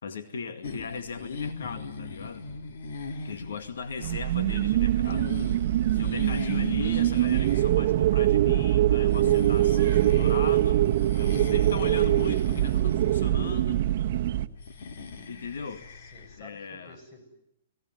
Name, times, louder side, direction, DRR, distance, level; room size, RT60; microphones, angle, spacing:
voice 1, 0.0-2.5 3.2-5.3 5.8-10.8 11.2-13.9 15.3-15.9 16.4-17.0, left 5 dB, 90° left, 8 dB, 2.2 m, -38 dB
sound 1, 0.6-16.4, left 4 dB, 60° left, 2.4 m, -40 dB
sound 2, 4.0-14.5, right 13 dB, 45° right, 1.2 m, -23 dB
voice 2, 15.6-17.2, left 1 dB, 25° left, 6 dB, 7.7 m, -52 dB
29.0 x 20.0 x 9.5 m, 0.82 s
hypercardioid pair, 165°, 0 cm